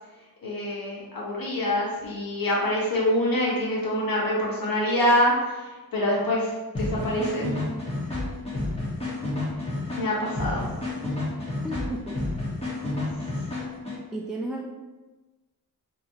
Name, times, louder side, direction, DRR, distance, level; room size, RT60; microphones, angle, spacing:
voice 1, 0.4-7.5 9.9-10.7, left 1 dB, 70° left, -5 dB, 1.2 m, -25 dB
sound 1, 6.7-14.0, left 2 dB, 15° left, 1.2 m, -30 dB
voice 2, 11.6-12.2 14.1-14.7, right 1 dB, ahead, -2 dB, 0.4 m, -33 dB
4.1 x 2.9 x 2.7 m, 1.2 s
wide cardioid pair, 60°, 37 cm